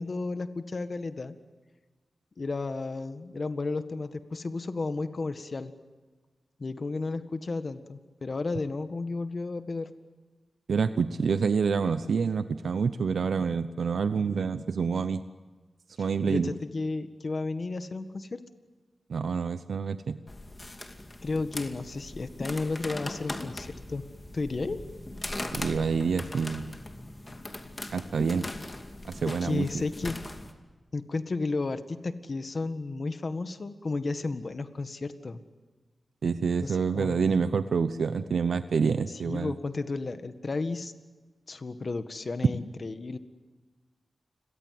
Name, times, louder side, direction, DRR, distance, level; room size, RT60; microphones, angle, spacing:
voice 1, 0.0-1.3 2.4-5.7 6.6-9.9 16.3-18.4 21.2-24.0 24.3-24.8 29.4-30.2 30.9-35.4 36.6-37.4 39.2-40.9 41.5-43.2, left 3 dB, 45° left, 10 dB, 1.7 m, -33 dB
voice 2, 10.7-15.2 16.0-16.5 19.1-20.2 25.5-26.7 27.9-28.4 29.1-29.7 36.2-39.5, right 5 dB, 80° right, 11 dB, 0.8 m, -27 dB
sound 1, 20.3-30.5, left 2 dB, 25° left, 2.5 m, -40 dB
29.5 x 22.5 x 7.8 m, 1.3 s
wide cardioid pair, 100°, 0 cm